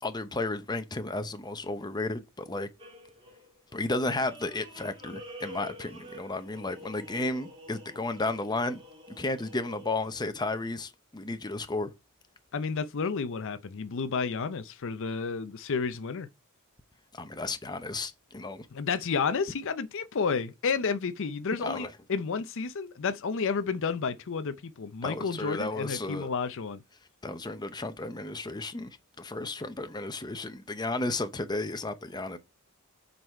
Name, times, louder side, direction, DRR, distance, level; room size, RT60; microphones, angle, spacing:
voice 1, 0.0-2.7 3.7-8.8 9.2-11.9 17.1-18.7 21.6-21.9 25.0-26.3 27.2-32.4, left 2 dB, 20° left, 0.7 m, -33 dB
sound 1, 2.8-10.2, equal, 25° right, 2.1 m, -48 dB
voice 2, 12.5-16.3 18.7-26.8, left 5 dB, 60° left, 0.6 m, -31 dB
7.7 x 4.0 x 4.5 m
head